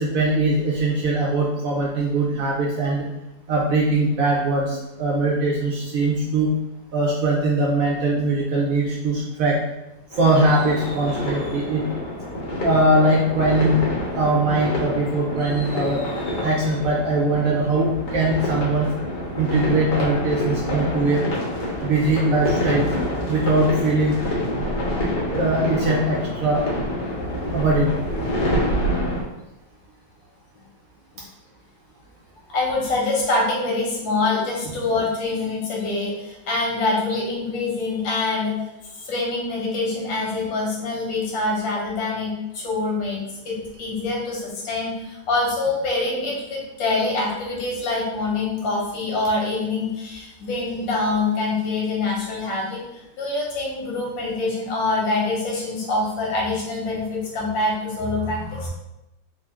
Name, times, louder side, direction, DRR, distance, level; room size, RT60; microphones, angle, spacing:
voice 1, 0.0-3.1 3.5-6.5 6.9-9.6 10.2-11.8 12.6-13.8 14.2-16.0 16.4-18.9 19.4-21.2 21.8-22.8 23.3-24.2 25.3-26.6 27.5-27.9, right 2 dB, 65° right, -3 dB, 0.9 m, -21 dB
sound 1, 10.1-29.2, equal, 65° left, 1.6 m, -27 dB
voice 2, 32.5-38.5 39.0-58.7, left 3 dB, 80° left, -2 dB, 1.6 m, -25 dB
3.8 x 2.5 x 3.5 m, 0.92 s
omnidirectional pair, 2.0 m